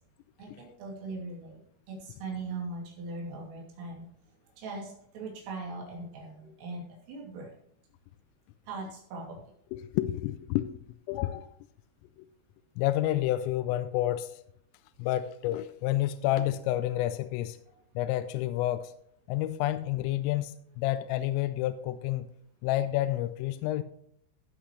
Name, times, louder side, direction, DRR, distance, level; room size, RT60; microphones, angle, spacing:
voice 1, 0.4-1.6 1.9-4.1 4.6-6.8 7.1-7.5 8.7-9.4, right 3 dB, 80° right, -3 dB, 5.3 m, -40 dB
voice 2, 9.7-10.7 11.1-11.5 12.2-12.3 12.8-14.4 15.0-17.6 18.0-18.9 19.3-22.3 22.6-23.8, left 14 dB, 85° left, 11 dB, 3.1 m, -29 dB
16.0 x 8.2 x 3.2 m, 0.68 s
omnidirectional pair, 5.8 m